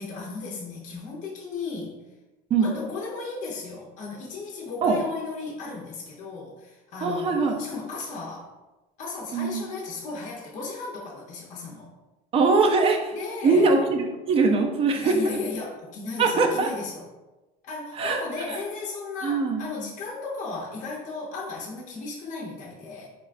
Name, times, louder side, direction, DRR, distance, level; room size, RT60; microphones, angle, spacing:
voice 1, 0.0-2.0 2.6-8.5 9.0-11.9 13.1-13.8 14.9-17.0 17.6-23.1, left 3 dB, 45° left, -3 dB, 0.6 m, -35 dB
voice 2, 7.0-7.6 9.3-9.6 12.3-13.1 13.4-15.3 16.2-16.7 18.0-18.2 19.2-19.6, right 3 dB, 30° right, 4 dB, 0.4 m, -22 dB
3.8 x 2.3 x 2.4 m, 1.1 s
cardioid pair, 135°, 18 cm